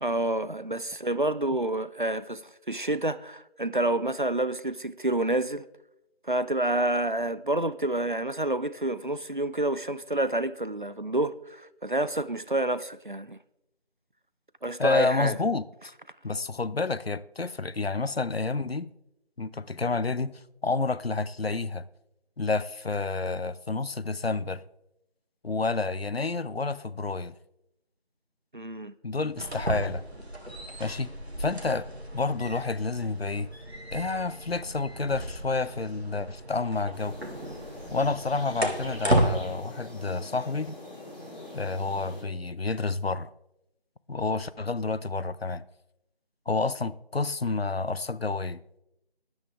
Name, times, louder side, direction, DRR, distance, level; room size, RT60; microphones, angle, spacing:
voice 1, 0.0-5.7 6.2-13.4 14.6-15.4 28.5-28.9, right 1 dB, 55° right, 0.5 m, -28 dB
voice 2, 14.8-15.9 16.2-18.9 19.4-21.9 22.4-24.6 25.4-27.3 29.0-30.0 30.8-31.1 31.4-31.9 32.1-33.5 33.9-37.2 37.9-40.8 41.5-43.3 44.1-45.6 46.5-48.6, left 3 dB, 70° left, 0.7 m, -29 dB
sound 1, 29.3-39.4, right 1 dB, 85° right, 2.3 m, -33 dB
sound 2, 36.9-42.2, left 1 dB, 55° left, 5.2 m, -44 dB
12.5 x 10.5 x 3.5 m
figure-of-eight pair, 175°, 31 cm